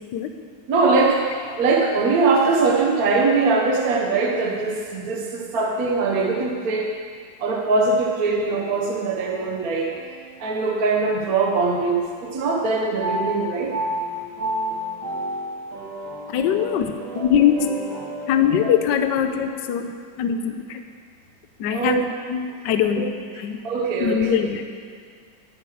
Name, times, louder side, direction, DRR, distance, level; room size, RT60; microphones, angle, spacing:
voice 1, 0.7-6.9 7.4-9.9 10.4-13.7 21.7-22.0 23.0-23.1 23.6-24.4, right 3 dB, 55° right, 0 dB, 1.3 m, -21 dB
sound 1, 8.4-11.9 12.2-19.5, right 1 dB, 85° right, 2.7 m, -33 dB
voice 2, 16.3-17.7 18.3-19.9 20.2-20.8 21.6-23.6 24.0-24.6, left 8 dB, 70° left, 7 dB, 1.3 m, -22 dB
11.5 x 8.7 x 4.8 m, 2.1 s
omnidirectional pair, 2.1 m